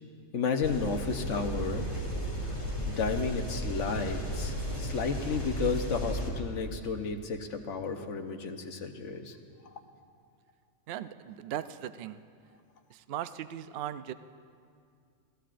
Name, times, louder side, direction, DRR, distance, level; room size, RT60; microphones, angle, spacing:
voice 1, 0.3-1.9 2.9-9.4, left 5 dB, 60° left, 5 dB, 1.2 m, -32 dB
sound 1, 0.6-6.3, equal, 20° left, 2.5 m, -34 dB
voice 2, 10.9-12.2 12.9-14.1, right 11 dB, 65° right, 12 dB, 0.6 m, -38 dB
30.0 x 16.5 x 2.5 m, 2.3 s
omnidirectional pair, 1.5 m